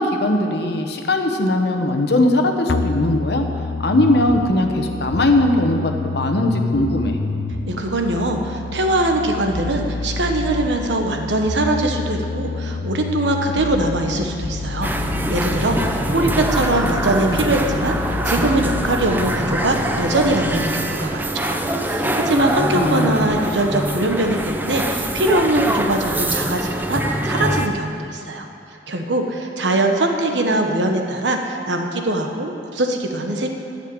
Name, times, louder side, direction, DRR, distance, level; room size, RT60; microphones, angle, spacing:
voice 1, 0.0-3.5 3.8-7.2 22.0-22.2 22.7-23.2, left 1 dB, 65° left, 4 dB, 1.1 m, -19 dB
sound 1, 2.7-20.7, left 3 dB, 80° left, 0.6 m, -28 dB
voice 2, 7.7-14.9 15.3-28.5 28.9-33.5, right 1 dB, 80° right, 3 dB, 1.2 m, -22 dB
sound 2, 14.8-27.7, right 1 dB, 10° right, 0.6 m, -24 dB
11.5 x 6.6 x 7.9 m, 2.5 s
head